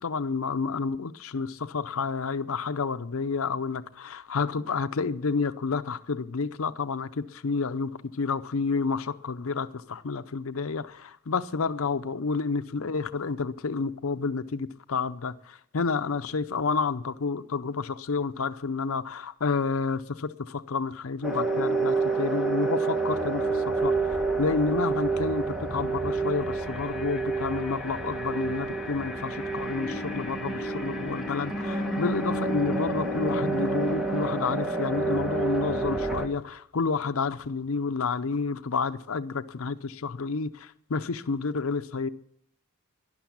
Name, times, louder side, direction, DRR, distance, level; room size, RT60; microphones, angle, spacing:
voice 1, 0.0-24.0 24.4-42.1, left 4 dB, 65° left, 0.6 m, -30 dB
sound 1, 21.2-36.3, right 3 dB, ahead, 1.7 m, -28 dB
12.0 x 11.5 x 8.5 m
head